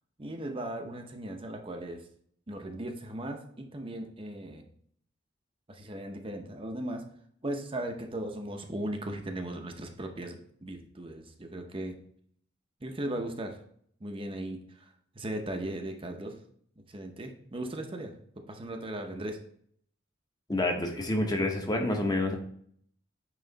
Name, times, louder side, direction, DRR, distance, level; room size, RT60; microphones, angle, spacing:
voice 1, 0.2-2.1 2.5-4.6 5.7-7.1 7.4-11.9 12.8-13.6 14.0-14.9 15.1-16.4 16.9-18.1 18.5-19.4, right 1 dB, 30° right, 4 dB, 0.7 m, -37 dB
voice 2, 20.5-22.4, left 1 dB, 20° left, 3 dB, 1.0 m, -28 dB
9.0 x 3.1 x 3.9 m, 0.62 s
head